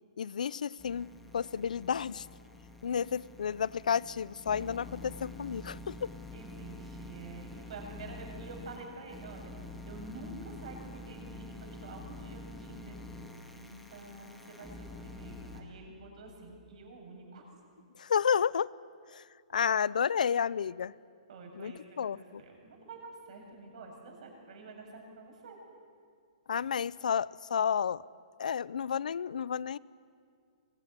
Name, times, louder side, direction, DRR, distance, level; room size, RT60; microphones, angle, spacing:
voice 1, 0.2-2.3 2.8-6.1 18.0-18.7 19.1-19.2 19.5-20.9 21.5-22.4 26.5-28.0 28.4-29.8, left 7 dB, 85° left, 22 dB, 0.7 m, -31 dB
sound 1, 0.8-15.6, left 2 dB, ahead, 2.0 m, -47 dB
voice 2, 6.3-9.5 9.9-13.0 13.5-17.4 21.3-22.0 22.4-25.6, right 2 dB, 55° right, 2 dB, 7.5 m, -48 dB
24.0 x 22.0 x 9.9 m, 2.3 s
hypercardioid pair, 165°, 4 cm